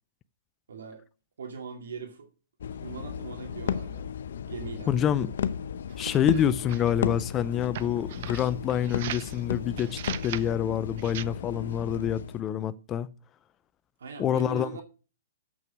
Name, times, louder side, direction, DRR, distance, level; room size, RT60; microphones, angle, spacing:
voice 1, 0.7-1.0 1.4-2.3 2.7-4.1 4.5-5.1 14.0-14.8, right 6 dB, 80° right, 2.2 m, -40 dB
sound 1, 2.6-12.4, left 8 dB, 70° left, 0.7 m, -34 dB
voice 2, 4.9-5.3 6.0-13.1 14.2-14.8, left 9 dB, 20° left, 0.5 m, -27 dB
sound 2, 5.9-7.0 7.7-9.4 9.8-10.5 11.0-11.2, right 12 dB, 50° right, 0.6 m, -39 dB
7.7 x 6.1 x 7.2 m
hypercardioid pair, 140°, 0 cm